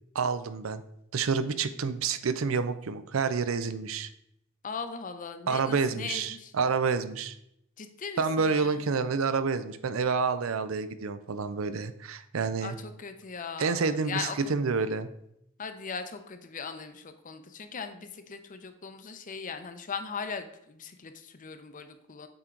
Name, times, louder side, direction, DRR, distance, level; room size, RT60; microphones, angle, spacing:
voice 1, 0.1-0.8 1.1-4.1 5.5-7.4 8.2-12.8 13.6-15.1, right 5 dB, 85° right, 12 dB, 0.5 m, -28 dB
voice 2, 4.6-6.5 7.8-8.8 12.6-14.5 15.6-22.3, left 5 dB, 40° left, 9 dB, 0.6 m, -39 dB
7.8 x 4.5 x 3.8 m, 0.76 s
head